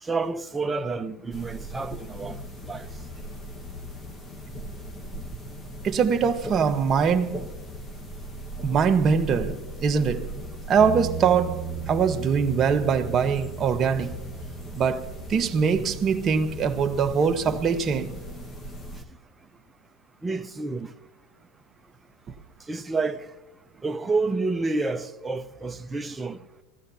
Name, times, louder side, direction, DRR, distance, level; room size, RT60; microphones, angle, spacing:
voice 1, 0.0-2.9 17.5-17.6 20.2-20.9 22.7-23.3 23.8-26.4, right 3 dB, 10° right, 0.6 m, -29 dB
sound 1, 1.3-19.0, equal, 20° left, 1.3 m, -39 dB
voice 2, 5.8-7.4 8.6-10.4 10.7-14.2 14.8-18.2, right 6 dB, 30° right, 1.0 m, -23 dB
Bass guitar, 10.8-17.0, right 11 dB, 55° right, 0.8 m, -37 dB
23.0 x 15.5 x 2.8 m
supercardioid pair, 120°, 0 cm